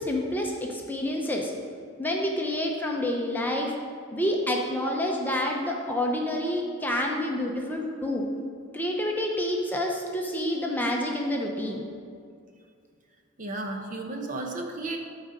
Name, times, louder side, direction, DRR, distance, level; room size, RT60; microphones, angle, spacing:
voice 1, 0.0-1.5 2.0-3.7 4.1-8.2 8.7-11.9, left 1 dB, 10° left, 0 dB, 0.7 m, -28 dB
voice 2, 13.4-15.0, right 2 dB, 40° right, 2 dB, 0.8 m, -33 dB
12.5 x 4.1 x 5.1 m, 2.2 s
head